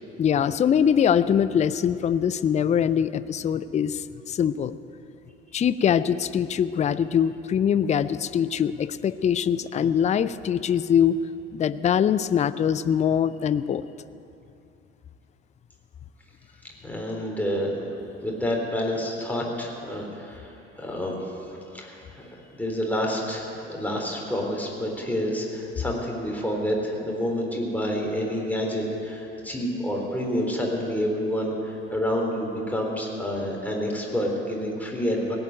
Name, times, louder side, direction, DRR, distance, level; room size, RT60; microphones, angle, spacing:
voice 1, 0.2-4.8 5.5-11.2 11.5-13.8, left 8 dB, 20° left, 15 dB, 0.4 m, -23 dB
voice 2, 16.8-21.4 21.7-22.2 22.5-35.4, equal, 5° left, -1 dB, 3.7 m, -28 dB
17.0 x 7.9 x 9.2 m, 2.8 s
figure-of-eight pair, 50°, 32 cm